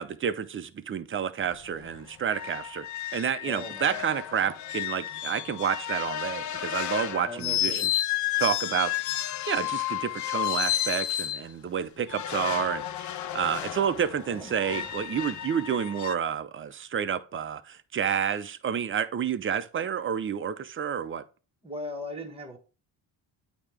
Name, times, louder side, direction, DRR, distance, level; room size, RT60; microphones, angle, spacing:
voice 1, 0.0-7.9 8.4-9.2 9.5-21.2, right 8 dB, 30° right, 0.6 m, -30 dB
sound 1, 1.4-1.5 1.9-2.0 2.3-11.4 12.1-16.1, left 12 dB, 45° left, 0.5 m, -32 dB
voice 2, 3.4-4.1 7.2-7.9 14.3-14.9 21.6-22.6, left 1 dB, 15° right, 1.4 m, -39 dB
8.7 x 3.0 x 4.8 m
cardioid pair, 115°, 45 cm